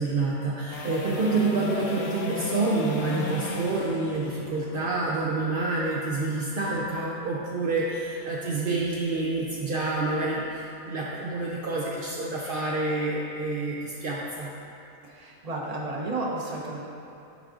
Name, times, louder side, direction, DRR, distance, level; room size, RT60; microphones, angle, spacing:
voice 1, 0.0-14.5, right 3 dB, 60° right, -4 dB, 0.5 m, -28 dB
sound 1, 0.7-6.8 13.4-13.5, left 3 dB, 75° left, 1.3 m, -36 dB
voice 2, 15.0-16.8, right 2 dB, 30° right, -3 dB, 0.8 m, -32 dB
10.5 x 4.8 x 3.8 m, 2.6 s
omnidirectional pair, 1.8 m